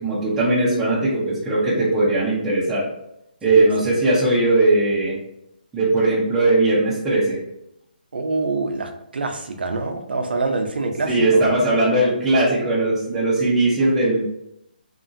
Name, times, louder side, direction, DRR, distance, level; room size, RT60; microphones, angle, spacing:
voice 1, 0.0-2.8 3.4-5.2 5.7-7.4 11.1-14.2, right 2 dB, 5° right, -9 dB, 0.5 m, -19 dB
voice 2, 3.5-3.9 8.1-11.5, right 3 dB, 85° right, 5 dB, 0.5 m, -26 dB
2.9 x 2.4 x 2.6 m, 0.81 s
hypercardioid pair, 170°, 5 cm